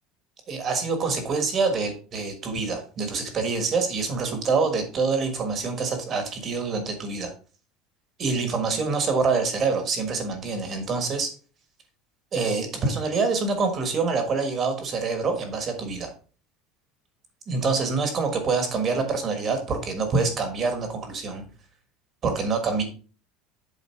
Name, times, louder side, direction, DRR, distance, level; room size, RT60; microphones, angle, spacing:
voice 1, 0.5-7.3 8.2-11.3 12.3-16.1 17.5-21.5 22.2-22.8, right 4 dB, 25° right, 6 dB, 1.5 m, -26 dB
7.6 x 4.7 x 4.5 m, 0.37 s
cardioid pair, 180°, 0 cm